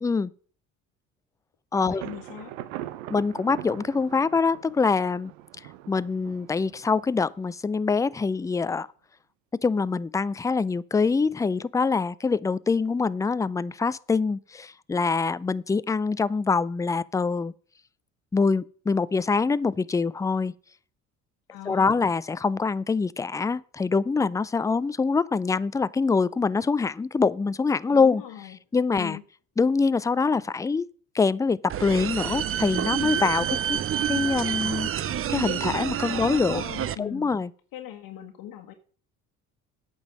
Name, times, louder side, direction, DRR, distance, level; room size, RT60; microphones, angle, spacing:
voice 1, 0.0-0.3 1.7-2.0 3.1-5.3 5.9-8.9 9.5-17.5 18.3-20.5 21.7-28.2 28.7-29.2 29.6-30.9 31.1-33.8 34.1-36.6 37.0-37.5, left 4 dB, 10° left, 0.4 m, -24 dB
voice 2, 1.7-2.5 21.5-22.1 27.9-28.6 28.9-29.2 36.1-37.3 37.7-38.7, left 11 dB, 65° left, 1.4 m, -39 dB
Thunder, 2.0-7.7, right 13 dB, 85° right, 0.8 m, -41 dB
sound 1, 31.7-36.9, right 10 dB, 35° right, 0.6 m, -28 dB
8.8 x 5.4 x 7.5 m
hypercardioid pair, 70°, 37 cm